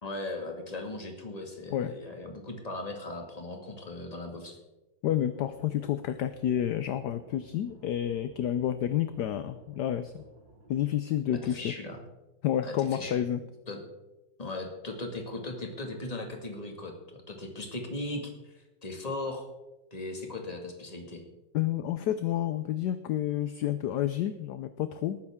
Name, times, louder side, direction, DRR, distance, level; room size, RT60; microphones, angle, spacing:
voice 1, 0.0-4.6 11.3-12.0 12.6-13.2 13.7-13.8 14.4-18.5 18.8-19.5 19.9-21.2, left 2 dB, 20° left, 2 dB, 1.9 m, -38 dB
voice 2, 5.0-10.2 10.7-11.8 12.4-13.4 21.5-25.2, left 11 dB, 70° left, 11 dB, 1.1 m, -29 dB
sound 1, 5.3-10.8, right 3 dB, 75° right, 3.4 m, -55 dB
19.0 x 9.7 x 3.6 m, 1.0 s
omnidirectional pair, 2.1 m